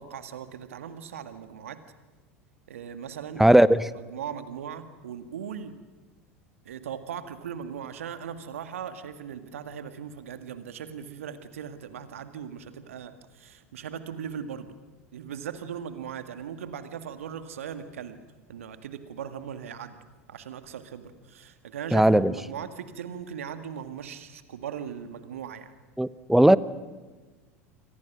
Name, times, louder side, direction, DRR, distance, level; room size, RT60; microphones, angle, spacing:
voice 1, 0.0-1.8 2.7-3.4 3.9-5.7 6.6-14.7 15.1-18.2 18.5-20.0 20.3-25.7, right 8 dB, 70° right, 2.0 m, -39 dB
voice 2, 3.4-3.9 21.9-22.3 26.0-26.6, right 1 dB, 5° right, 0.9 m, -18 dB
29.0 x 24.5 x 6.2 m
figure-of-eight pair, 80°, 7 cm